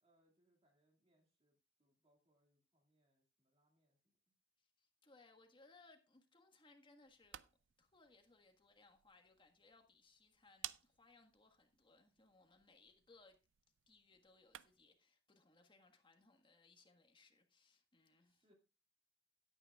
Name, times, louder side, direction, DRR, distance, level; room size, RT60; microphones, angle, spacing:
voice 1, 0.0-4.0 18.2-18.5, equal, 35° right, 2.2 m, -79 dB
voice 2, 4.6-7.4 7.8-13.4 13.9-18.5, left 3 dB, 25° left, 1.5 m, -68 dB
sound 1, 7.0-15.0, right 13 dB, 90° right, 0.5 m, -58 dB
16.5 x 9.0 x 2.4 m
head